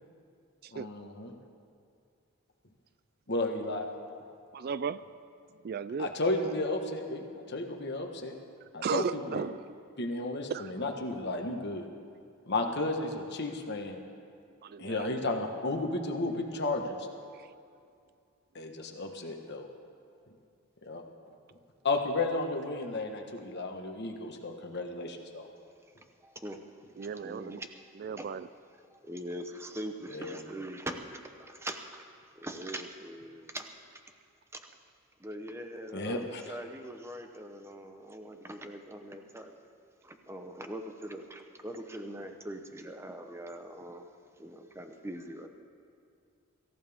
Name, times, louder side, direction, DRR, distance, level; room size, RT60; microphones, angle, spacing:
voice 1, 0.7-1.3 3.3-3.9 6.0-8.3 8.7-9.4 10.0-11.9 12.5-14.0 14.8-17.1 18.5-19.7 20.9-21.0 21.8-25.5 30.1-30.4 35.9-36.6, left 2 dB, 50° left, 3 dB, 1.4 m, -33 dB
voice 2, 4.5-5.1 5.6-6.2 8.8-9.7 10.5-10.9 14.6-15.5 17.3-17.5 27.0-27.6 27.9-28.5, right 6 dB, 45° right, 16 dB, 0.3 m, -36 dB
voice 3, 26.2-26.6 27.0-27.7 28.2-28.3 29.0-31.0 31.5-32.0 32.4-33.6 35.2-39.5 40.0-44.0 44.4-45.5, right 1 dB, 10° right, 5 dB, 0.8 m, -42 dB
25.0 x 14.5 x 3.6 m, 2.4 s
head